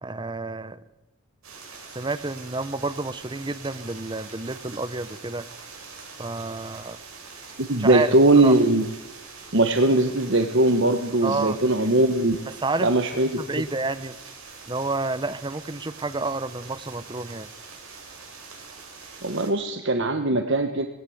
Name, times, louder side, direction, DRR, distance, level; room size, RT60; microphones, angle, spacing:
voice 1, 0.0-0.8 1.9-5.5 6.2-7.0 7.8-8.5 11.2-11.6 12.6-12.9 13.4-14.2 14.7-17.5, right 3 dB, 20° right, 14 dB, 0.8 m, -29 dB
sound 1, 1.4-19.5, right 4 dB, 75° right, 6.6 m, -44 dB
voice 2, 7.6-8.8 9.5-12.4 12.8-13.6 19.2-20.9, right 2 dB, 55° right, 6 dB, 1.3 m, -20 dB
19.5 x 17.0 x 7.9 m, 1.0 s
head